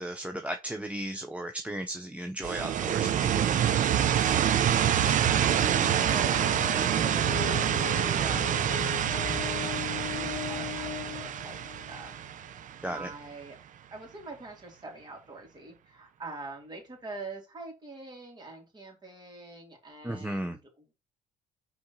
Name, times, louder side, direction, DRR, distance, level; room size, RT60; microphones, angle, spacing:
voice 1, 0.0-3.6 12.8-13.1 20.0-20.6, right 1 dB, 10° right, 0.7 m, -35 dB
sound 1, 2.4-13.1, right 9 dB, 50° right, 0.7 m, -27 dB
voice 2, 4.8-6.6 7.0-8.4 10.1-12.1 12.5-13.6 13.9-20.9, right 3 dB, 25° right, 3.1 m, -44 dB
sound 2, 5.3-12.2, left 12 dB, 70° left, 0.7 m, -39 dB
5.2 x 3.9 x 5.5 m
cardioid pair, 110°, 17 cm